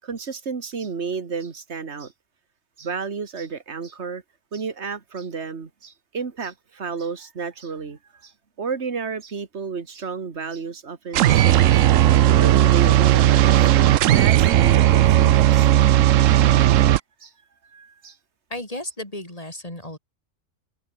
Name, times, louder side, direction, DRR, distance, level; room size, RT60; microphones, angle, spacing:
voice 1, 0.0-2.1 2.8-4.2 4.5-8.3 8.6-11.8 12.1-13.7 14.1-15.7 16.3-16.4 17.2-17.3 17.6-18.2, right 5 dB, 60° right, 2.2 m, -32 dB
sound 1, 11.1-17.0, right 13 dB, 80° right, 1.0 m, -16 dB
voice 2, 18.5-20.0, left 1 dB, 30° left, 5.8 m, -34 dB
omnidirectional pair, 1.3 m